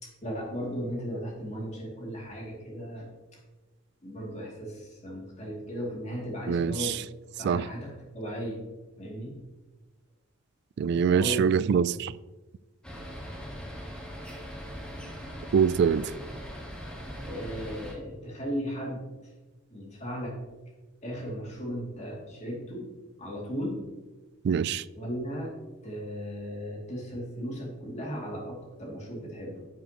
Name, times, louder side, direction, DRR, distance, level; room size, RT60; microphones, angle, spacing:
voice 1, 0.0-3.4 4.0-7.0 7.4-8.6 9.0-9.4 11.1-11.8 17.3-19.3 19.7-20.4 21.0-22.9 23.2-23.9 24.9-25.5 25.8-29.7, equal, 35° left, 2.5 m, -36 dB
voice 2, 6.5-6.9 7.4-7.6 10.8-12.1 15.5-16.1 24.4-24.8, right 6 dB, 60° right, 0.3 m, -24 dB
sound 1, 12.8-17.9, equal, 5° left, 1.5 m, -40 dB
11.0 x 7.8 x 3.0 m
head